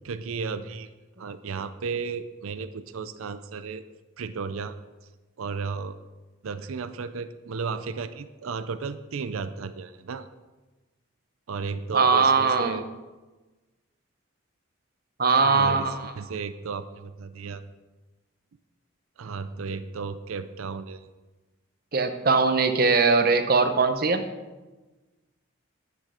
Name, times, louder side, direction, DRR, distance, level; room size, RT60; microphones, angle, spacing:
voice 1, 0.0-0.9 1.2-3.8 4.2-4.7 5.4-6.0 6.4-10.3 11.5-12.9 15.4-17.6 19.2-21.1, right 5 dB, 85° right, 12 dB, 0.5 m, -34 dB
voice 2, 11.9-12.8 15.2-16.1 21.9-24.3, right 4 dB, 45° right, 9 dB, 0.8 m, -21 dB
11.0 x 9.0 x 5.0 m, 1.2 s
head